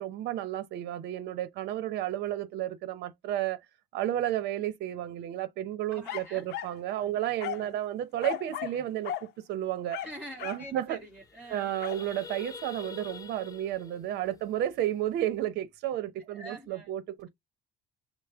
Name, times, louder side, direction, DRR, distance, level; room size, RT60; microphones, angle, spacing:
voice 1, 0.0-3.6 3.9-10.0 10.4-11.0 11.5-17.3, right 12 dB, 80° right, 0.8 m, -32 dB
voice 2, 5.9-6.5 6.9-7.2 7.5-7.8 10.0-11.7 16.2-16.9, right 1 dB, 5° right, 2.7 m, -46 dB
sound 1, 6.0-6.8 7.4-7.7 8.2-8.8 9.0-9.3 9.9-10.7 11.8-12.0, left 11 dB, 80° left, 0.7 m, -36 dB
sound 2, 10.1-10.2 10.4-10.7 11.0-15.4, left 6 dB, 20° left, 0.4 m, -47 dB
6.3 x 2.2 x 3.4 m
cardioid pair, 110°, 17 cm